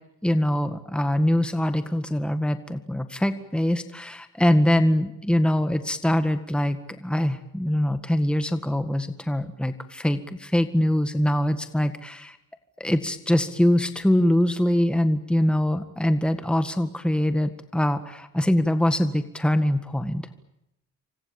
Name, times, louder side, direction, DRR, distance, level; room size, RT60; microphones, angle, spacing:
voice 1, 0.2-12.4 12.8-20.2, left 1 dB, 5° left, 8 dB, 1.8 m, -23 dB
28.5 x 24.5 x 7.2 m, 0.84 s
cardioid pair, 90°, 30 cm